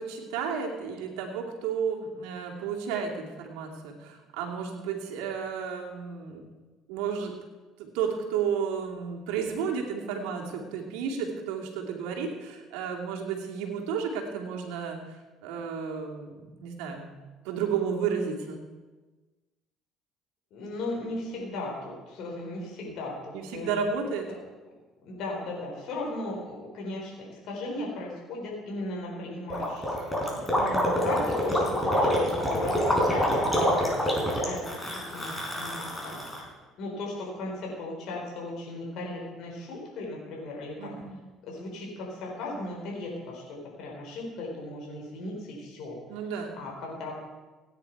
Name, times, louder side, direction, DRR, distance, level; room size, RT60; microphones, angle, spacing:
voice 1, 0.0-6.4 6.9-7.3 7.8-15.0 15.4-17.1 17.4-18.6 22.8-22.9 23.3-24.3 30.5-31.1 40.8-41.2 46.1-46.5, right 6 dB, 85° right, 0 dB, 2.5 m, -32 dB
voice 2, 20.5-23.7 24.3-24.4 25.0-29.8 30.1-34.8 35.1-35.3 35.6-36.2 36.8-41.0 41.4-46.0 46.6-47.2, left 2 dB, 70° left, -2 dB, 4.5 m, -37 dB
Gurgling, 29.5-36.4, equal, 10° left, 5.3 m, -26 dB
17.0 x 9.7 x 4.7 m, 1.3 s
supercardioid pair, 80°, 0 cm